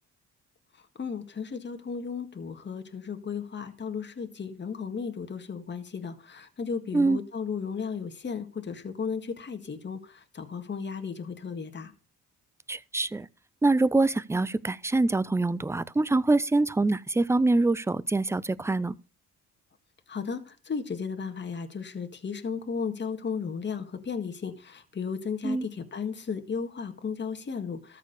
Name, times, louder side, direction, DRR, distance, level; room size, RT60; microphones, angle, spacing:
voice 1, 1.0-11.9 20.1-28.0, left 6 dB, 35° left, 1.8 m, -35 dB
voice 2, 12.7-13.3 13.6-19.0 25.4-25.7, right 2 dB, 10° right, 0.5 m, -25 dB
13.5 x 4.8 x 6.9 m
cardioid pair, 90°, 30 cm